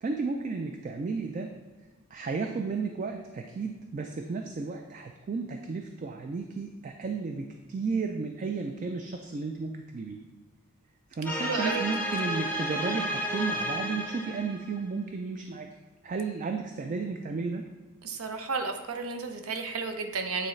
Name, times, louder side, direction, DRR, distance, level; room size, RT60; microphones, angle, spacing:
voice 1, 0.0-1.5 2.1-10.2 11.1-15.7 16.0-17.6, right 4 dB, 35° right, 4 dB, 0.3 m, -33 dB
sound 1, 11.2-14.8, equal, 10° left, 0.6 m, -32 dB
voice 2, 11.4-11.9 18.0-20.5, right 4 dB, 80° right, 5 dB, 0.7 m, -32 dB
8.6 x 3.9 x 3.2 m, 1.3 s
head